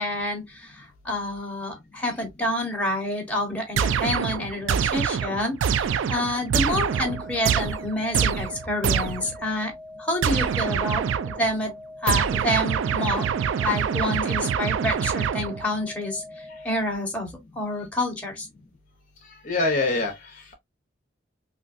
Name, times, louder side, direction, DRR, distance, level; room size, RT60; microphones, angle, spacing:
voice 1, 0.0-9.7 10.0-11.7 12.0-13.3 13.6-18.5, left 1 dB, 5° left, 1.2 m, -28 dB
sound 1, 3.8-9.4 10.2-11.5 12.1-15.8, right 7 dB, 85° right, 0.3 m, -25 dB
sound 2, 6.8-16.8, left 2 dB, 45° right, 0.7 m, -43 dB
voice 2, 19.4-20.5, left 3 dB, 45° left, 0.7 m, -25 dB
3.6 x 2.6 x 2.5 m
head